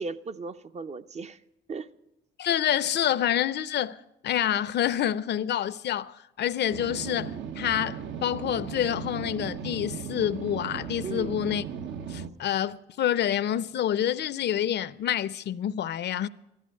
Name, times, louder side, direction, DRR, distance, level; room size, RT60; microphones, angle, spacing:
voice 1, 0.0-1.4 1.7-1.9 11.0-11.3, right 4 dB, 35° right, 0.5 m, -36 dB
voice 2, 2.4-4.0 4.2-11.6 12.1-16.3, left 10 dB, 60° left, 0.5 m, -27 dB
sound 1, 6.7-12.3, right 7 dB, 70° right, 0.9 m, -37 dB
14.0 x 13.0 x 6.4 m
cardioid pair, 90°, 20 cm